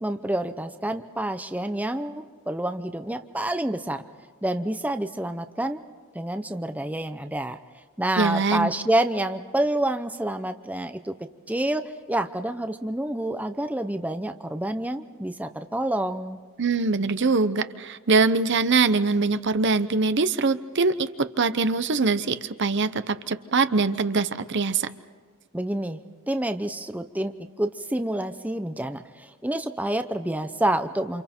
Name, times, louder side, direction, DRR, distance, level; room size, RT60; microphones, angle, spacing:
voice 1, 0.0-4.0 4.4-5.8 6.1-7.6 8.0-11.1 11.5-16.4 25.5-26.0 26.3-27.3 27.6-31.2, right 1 dB, 5° right, 8 dB, 0.7 m, -28 dB
voice 2, 8.2-8.7 16.6-24.9, right 4 dB, 55° right, 12 dB, 0.8 m, -23 dB
29.0 x 27.5 x 4.5 m, 1.5 s
head